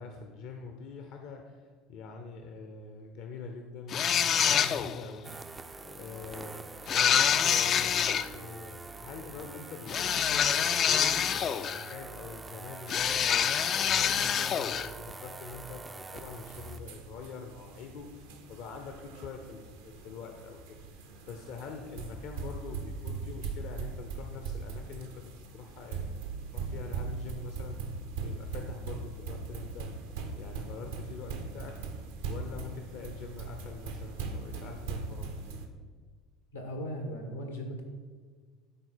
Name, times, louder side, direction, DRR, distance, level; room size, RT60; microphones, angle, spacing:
voice 1, 0.0-5.6 5.8-13.5 13.7-20.8 21.3-25.3 25.5-26.1 26.5-27.8 28.2-29.9 30.4-31.7 32.3-35.3, left 5 dB, 60° left, 4 dB, 0.7 m, -44 dB
sound 1, 3.9-5.1 6.9-8.3 9.9-11.9 12.9-14.9, left 8 dB, 45° left, 0.4 m, -26 dB
sound 2, 5.2-16.8, right 3 dB, 20° right, 0.4 m, -45 dB
sound 3, 16.2-35.7, right 4 dB, 75° right, 0.8 m, -40 dB
voice 2, 36.5-37.8, equal, 90° left, 3 dB, 1.4 m, -37 dB
11.5 x 4.0 x 4.4 m, 1.5 s
figure-of-eight pair, 65°, 0 cm